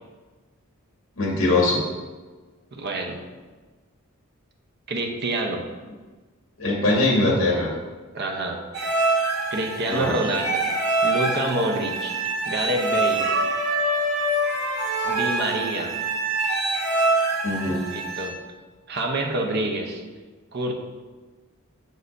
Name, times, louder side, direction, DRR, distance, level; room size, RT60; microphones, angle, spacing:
voice 1, 1.2-1.8 6.6-7.7 9.9-10.2 17.4-17.9, left 2 dB, 65° left, -3 dB, 2.0 m, -21 dB
voice 2, 2.7-3.2 4.9-5.6 8.1-8.6 9.5-10.7 11.0-12.2 12.4-13.3 15.0-15.9 17.9-18.3 18.9-20.0 20.5-20.7, right 2 dB, 50° right, 2 dB, 0.8 m, -27 dB
sound 1, 8.7-18.3, right 2 dB, 85° right, 1.4 m, -25 dB
6.6 x 6.4 x 2.6 m, 1.3 s
head